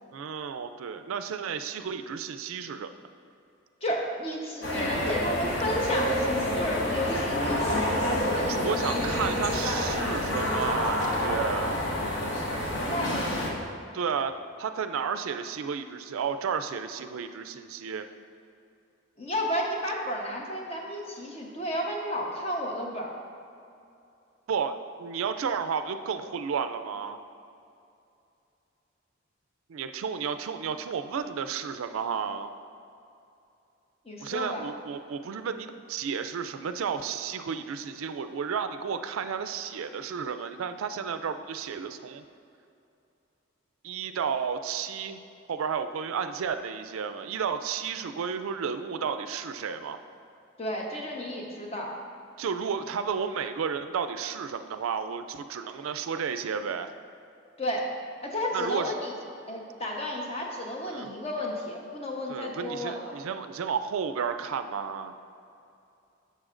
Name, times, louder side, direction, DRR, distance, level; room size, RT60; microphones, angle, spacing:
voice 1, 0.1-2.9 8.4-11.8 13.9-18.1 24.5-27.2 29.7-32.5 34.2-42.2 43.8-45.2 45.5-50.0 52.4-56.9 58.5-58.9 60.9-61.1 62.3-65.1, right 6 dB, 80° right, 9 dB, 0.4 m, -32 dB
voice 2, 3.8-9.0 12.8-13.3 19.2-23.2 34.0-34.6 50.6-51.9 57.6-57.9 58.2-59.1 59.5-63.2, left 1 dB, 30° left, -1 dB, 0.9 m, -32 dB
sound 1, 4.6-13.5, left 1 dB, 55° left, 1.1 m, -28 dB
11.0 x 6.5 x 2.5 m, 2.6 s
head